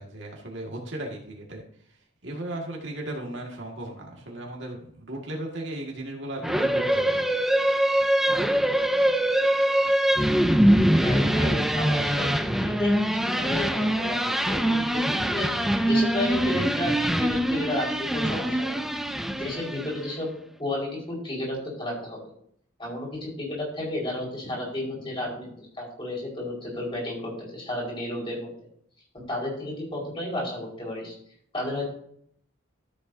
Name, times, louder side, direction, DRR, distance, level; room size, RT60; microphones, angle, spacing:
voice 1, 0.0-1.6 2.2-7.2, right 1 dB, 55° right, -1 dB, 1.9 m, -36 dB
sound 1, 6.4-20.0, right 1 dB, ahead, 0.4 m, -23 dB
voice 2, 10.9-20.3 20.6-22.3 22.8-27.2 27.5-28.5 29.1-31.1 31.5-31.8, left 1 dB, 25° left, -3 dB, 4.8 m, -32 dB
13.5 x 8.0 x 2.7 m, 0.65 s
head